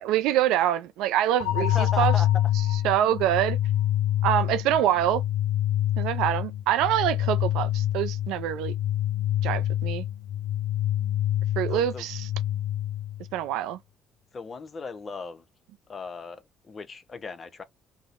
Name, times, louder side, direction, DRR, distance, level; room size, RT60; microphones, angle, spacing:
voice 1, 0.0-2.1 2.8-3.6 4.2-5.2 6.0-8.7 9.4-10.0 11.6-12.2 13.3-13.8, right 12 dB, 75° right, 0.3 m, -25 dB
sound 1, 1.4-13.4, left 12 dB, 85° left, 0.3 m, -27 dB
voice 2, 1.7-2.3 11.7-12.1 14.3-15.4 15.9-17.6, left 4 dB, 40° left, 0.6 m, -37 dB
2.6 x 2.1 x 2.4 m
hypercardioid pair, 60°, 0 cm